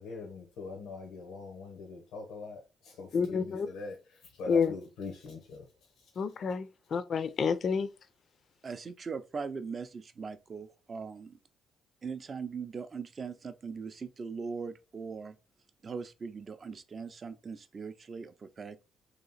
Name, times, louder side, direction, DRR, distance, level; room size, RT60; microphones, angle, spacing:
voice 1, 0.0-5.6 6.0-6.1, left 3 dB, 90° left, 0.7 m, -43 dB
voice 2, 3.1-3.7 4.5-4.7 6.2-7.9, left 6 dB, 55° left, 0.4 m, -29 dB
voice 3, 8.6-11.4 12.0-15.4 15.8-18.8, right 5 dB, 40° right, 0.4 m, -40 dB
3.1 x 2.8 x 3.9 m
cardioid pair, 90°, 0 cm